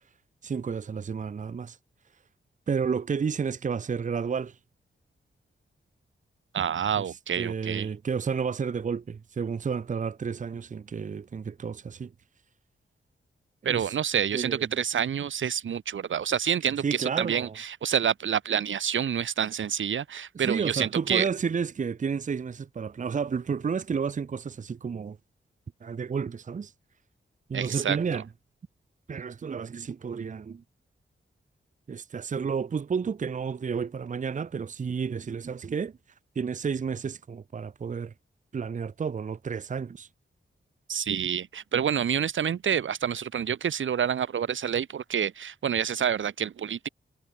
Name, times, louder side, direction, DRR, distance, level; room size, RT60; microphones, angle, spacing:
voice 1, 0.4-1.8 2.7-4.6 7.4-12.1 13.6-13.9 14.3-14.7 16.8-17.5 20.3-25.2 25.8-26.7 27.5-28.2 29.1-30.6 31.9-36.0 36.4-38.1 38.5-40.1, right 6 dB, 40° right, 0.8 m, -31 dB
voice 2, 6.5-7.9 13.6-21.3 27.5-28.0 40.9-46.9, right 8 dB, 85° right, 1.1 m, -28 dB
wide cardioid pair, 170°, 19 cm